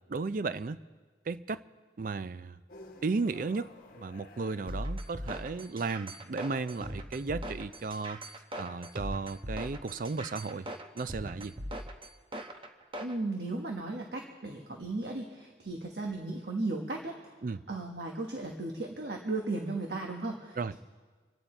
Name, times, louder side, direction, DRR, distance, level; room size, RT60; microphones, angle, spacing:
voice 1, 0.1-0.8 1.3-1.6 2.0-2.6 3.0-3.7 3.9-8.2 8.6-10.7 10.9-11.5 17.4-17.6 20.6-20.7, right 4 dB, 45° right, 15 dB, 0.4 m, -34 dB
sound 1, 2.7-5.5, left 2 dB, 50° left, 1.2 m, -53 dB
sound 2, 4.7-13.2, equal, 30° right, 0.9 m, -40 dB
voice 2, 13.0-17.1 17.7-20.8, right 2 dB, 65° right, 1 dB, 1.3 m, -36 dB
28.0 x 9.3 x 4.4 m, 1.4 s
head